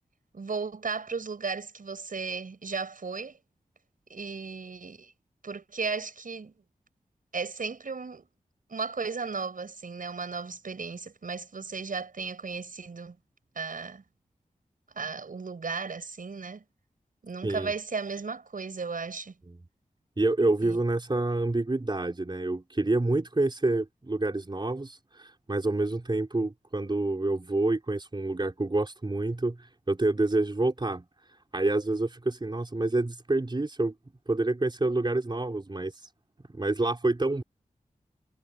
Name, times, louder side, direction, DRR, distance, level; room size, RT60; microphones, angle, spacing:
voice 1, 0.3-3.4 4.1-5.1 5.4-6.5 7.3-8.3 8.7-13.2 13.5-14.0 14.9-16.6 17.2-19.3 20.6-20.8, right 4 dB, 70° right, 6.7 m, -35 dB
voice 2, 17.4-17.7 19.5-19.6 20.2-31.1 31.5-33.9 34.3-35.9 36.5-37.4, right 2 dB, 30° right, 3.8 m, -28 dB
wide cardioid pair, 65°, 14 cm